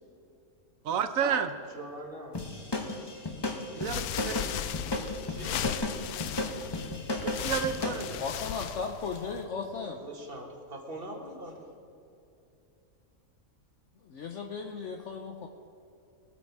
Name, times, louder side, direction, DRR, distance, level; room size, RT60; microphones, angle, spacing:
voice 1, 0.8-1.5 3.8-4.3 7.4-8.2, right 7 dB, 70° right, 9 dB, 1.1 m, -30 dB
voice 2, 1.7-2.4 5.3-5.7 9.8-11.6, right 1 dB, 40° right, 1 dB, 1.8 m, -42 dB
sound 1, 2.3-8.1, left 2 dB, 20° left, 0.9 m, -34 dB
sound 2, 3.8-9.5, left 10 dB, 80° left, 1.1 m, -37 dB
voice 3, 8.2-10.0 14.0-15.5, left 5 dB, 60° left, 4 dB, 1.0 m, -36 dB
21.5 x 8.4 x 4.7 m, 2.7 s
omnidirectional pair, 1.5 m